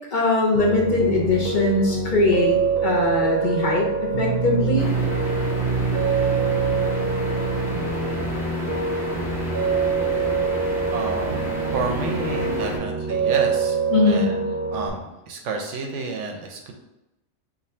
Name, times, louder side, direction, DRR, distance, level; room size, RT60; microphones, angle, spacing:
voice 1, 0.1-4.9 13.9-14.3, left 2 dB, 55° left, -1 dB, 0.6 m, -21 dB
Piano, 0.5-14.9, right 5 dB, 60° right, 0.7 m, -25 dB
sound 1, 4.8-12.8, left 1 dB, 5° right, 0.4 m, -32 dB
voice 2, 10.9-13.8 14.0-14.4 14.7-16.7, right 4 dB, 85° right, 2 dB, 1.0 m, -30 dB
2.6 x 2.6 x 4.2 m, 0.95 s
omnidirectional pair, 1.2 m